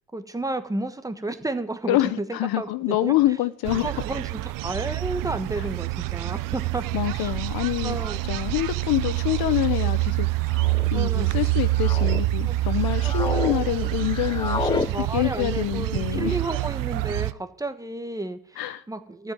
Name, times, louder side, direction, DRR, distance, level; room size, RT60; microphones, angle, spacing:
voice 1, 0.1-3.1 3.8-6.8 7.2-7.3 7.8-8.2 9.8-9.9 10.9-11.3 12.4-12.6 13.0-13.9 14.9-19.3, right 2 dB, 10° right, 1.2 m, -32 dB
voice 2, 1.9-3.9 6.9-8.0 8.3-10.3 10.6-16.4 18.6-18.8, left 15 dB, 55° left, 0.9 m, -26 dB
sound 1, 3.6-17.3, right 19 dB, 50° right, 0.7 m, -26 dB
sound 2, 6.8-6.9 7.9-8.2 9.2-9.6 10.4-10.9 11.5-12.2 12.7-13.6 13.8-14.9, left 4 dB, 10° left, 0.4 m, -32 dB
14.0 x 7.7 x 9.2 m
cardioid pair, 135°, 42 cm